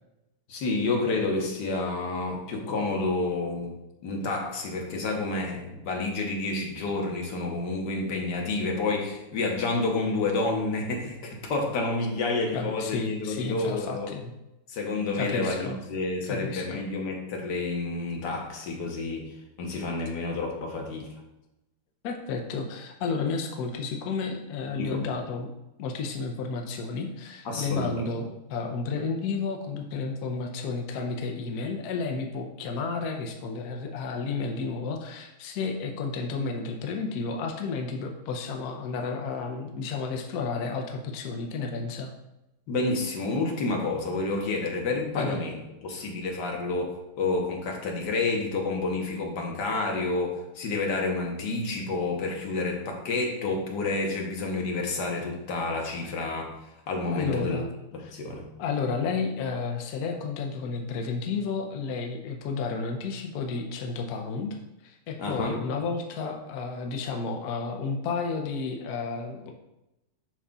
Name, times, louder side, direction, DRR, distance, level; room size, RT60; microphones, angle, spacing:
voice 1, 0.5-3.7 4.0-14.1 14.7-21.1 24.7-25.0 27.4-28.0 42.7-56.5 56.9-57.6 57.9-58.4 65.2-65.6, left 3 dB, 55° left, 1 dB, 1.5 m, -29 dB
voice 2, 12.5-14.3 15.1-15.8 16.3-16.9 22.0-25.5 25.8-42.1 45.1-45.4 57.1-57.7 58.0-58.1 58.6-64.6 64.8-69.5, left 4 dB, 80° left, 3 dB, 0.8 m, -32 dB
7.5 x 5.4 x 2.3 m, 0.93 s
omnidirectional pair, 2.4 m